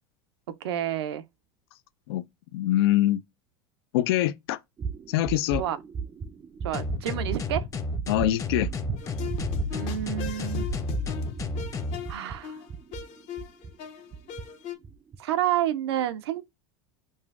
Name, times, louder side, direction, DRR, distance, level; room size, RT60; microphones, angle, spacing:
voice 1, 0.6-1.2 5.6-5.8 6.6-7.6 9.7-10.7 12.1-12.6 15.2-16.4, right 11 dB, 85° right, 0.5 m, -29 dB
voice 2, 2.5-3.2 3.9-4.6 5.1-5.6 8.1-8.7, left 14 dB, 75° left, 0.4 m, -24 dB
sound 1, 4.8-13.8 14.1-14.4 14.8-15.2, right 6 dB, 20° right, 0.4 m, -36 dB
sound 2, 6.7-12.0, left 2 dB, 25° left, 0.8 m, -32 dB
sound 3, 9.0-14.7, left 6 dB, 55° left, 0.9 m, -36 dB
5.4 x 2.4 x 2.3 m
supercardioid pair, 105°, 13 cm